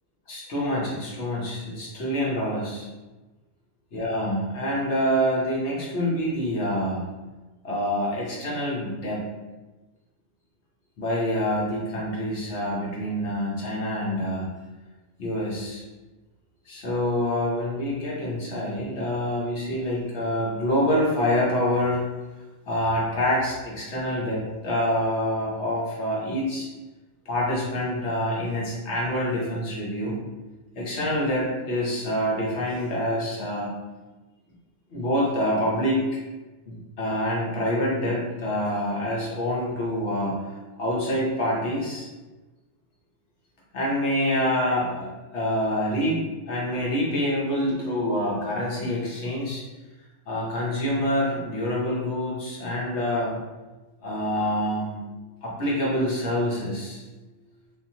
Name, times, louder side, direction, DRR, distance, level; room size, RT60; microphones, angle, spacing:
voice 1, 0.3-2.9 3.9-7.0 7.6-9.3 11.0-14.5 15.2-15.8 16.7-22.0 22.7-26.7 27.3-30.2 30.8-33.7 34.9-36.1 36.7-40.4 40.8-42.1 43.7-49.6 50.3-53.4 54.0-55.0 55.4-57.0, equal, 55° left, -4 dB, 0.9 m, -26 dB
3.6 x 2.4 x 2.7 m, 1.2 s
omnidirectional pair, 1.5 m